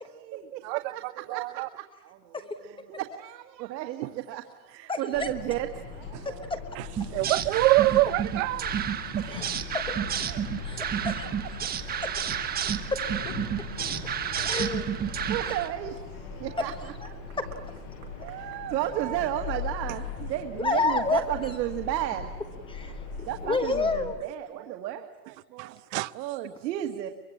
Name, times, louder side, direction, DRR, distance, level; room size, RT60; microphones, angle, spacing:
voice 1, 0.1-1.0 1.3-1.7 2.0-6.5 9.2-9.8 10.3-10.4 11.9-12.0 12.5-12.8 14.0-14.7 15.1-17.4 18.1-22.3 22.9-23.0 23.2-25.7 26.1-27.1, right 12 dB, 85° right, 1.9 m, -34 dB
voice 2, 0.6-1.7 6.8-6.9 7.1-8.7 25.6-26.1, right 19 dB, 50° right, 0.8 m, -25 dB
voice 3, 4.9-5.3 6.2-6.6 9.3-9.4 9.7-10.1 10.6-11.3 12.0-12.1 12.9-13.3 14.4-15.0 15.4-15.6 16.6-16.7 17.4-17.5 20.6-21.2 22.7-24.1, left 3 dB, 10° left, 1.2 m, -30 dB
sound 1, 5.1-24.1, left 5 dB, 40° left, 7.8 m, -40 dB
sound 2, 7.0-15.7, right 8 dB, 20° right, 1.2 m, -31 dB
24.0 x 23.0 x 8.6 m
supercardioid pair, 160°, 49 cm